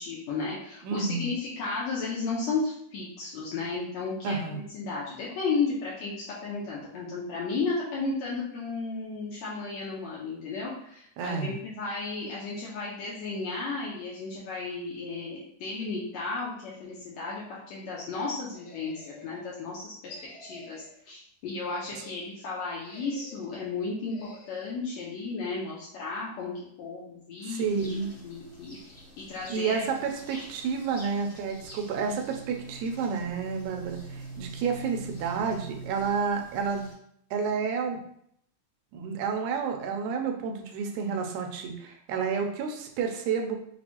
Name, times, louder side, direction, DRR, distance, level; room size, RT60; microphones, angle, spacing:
voice 1, 0.0-28.9 29.2-29.8 30.3-30.4, left 4 dB, 75° left, -6 dB, 1.8 m, -34 dB
voice 2, 0.8-1.3 4.2-4.6 11.2-11.5 27.5-28.1 29.5-36.9 37.3-38.0 38.9-43.6, right 5 dB, 75° right, 3 dB, 1.9 m, -30 dB
sound 1, 18.5-19.5 20.0-21.0 21.4-22.3 22.8-23.6 24.1-24.8, left 1 dB, 55° left, 2.7 m, -50 dB
sound 2, 27.6-36.9, right 3 dB, 35° left, 0.6 m, -45 dB
6.1 x 2.3 x 2.9 m, 0.70 s
omnidirectional pair, 3.6 m